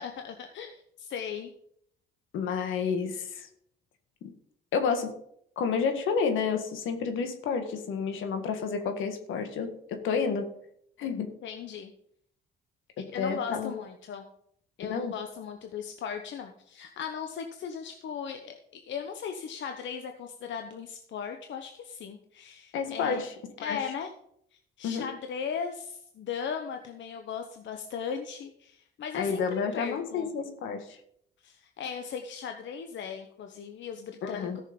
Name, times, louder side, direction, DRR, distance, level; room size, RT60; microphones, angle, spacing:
voice 1, 0.0-1.5 11.4-11.9 13.1-14.3 14.8-23.2 23.6-24.1 24.8-29.4 29.7-30.3 31.4-34.6, left 7 dB, 70° left, 5 dB, 1.0 m, -37 dB
voice 2, 2.3-3.5 4.2-4.3 4.7-5.2 5.5-10.5 11.0-11.3 13.0-13.7 14.8-15.2 22.7-23.3 23.6-23.9 24.8-25.1 29.1-31.0 34.2-34.6, left 5 dB, 85° left, 7 dB, 1.7 m, -30 dB
14.0 x 6.5 x 5.3 m, 0.70 s
cardioid pair, 90°, 20 cm